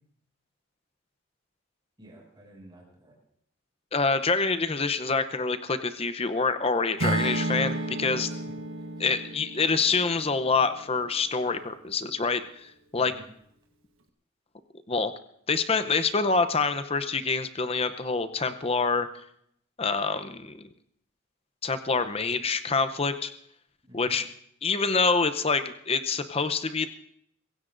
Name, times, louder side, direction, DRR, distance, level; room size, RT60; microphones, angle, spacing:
voice 1, 2.0-3.1 8.3-9.1 13.0-13.2 23.8-24.2, right 1 dB, 20° right, -3 dB, 6.6 m, -52 dB
voice 2, 3.9-8.3 9.0-13.1 14.9-15.1 15.5-19.1 19.8-20.6 21.6-23.3 23.9-24.2 24.6-26.9, left 4 dB, 30° left, 10 dB, 0.7 m, -26 dB
Acoustic guitar / Strum, 7.0-11.2, right 2 dB, 75° right, 1.3 m, -32 dB
23.5 x 16.0 x 2.6 m, 0.72 s
head